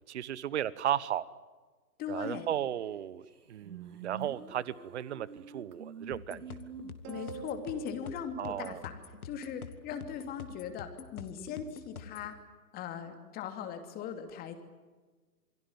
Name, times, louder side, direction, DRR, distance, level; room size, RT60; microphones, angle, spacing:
voice 1, 0.1-1.3 2.1-6.4 8.4-8.8, right 11 dB, 45° right, 20 dB, 1.1 m, -35 dB
voice 2, 2.0-2.5 7.1-8.9 9.2-12.4 12.7-14.5, left 7 dB, 20° left, 6 dB, 2.8 m, -39 dB
sound 1, 2.9-3.0 3.3-7.3, right 7 dB, 70° right, 2.5 m, -47 dB
sound 2, 6.1-12.3, left 6 dB, 60° left, 2.4 m, -47 dB
sound 3, 7.0-9.6, right 8 dB, 20° right, 2.6 m, -48 dB
28.0 x 23.5 x 7.6 m, 1.3 s
figure-of-eight pair, 130°, 49 cm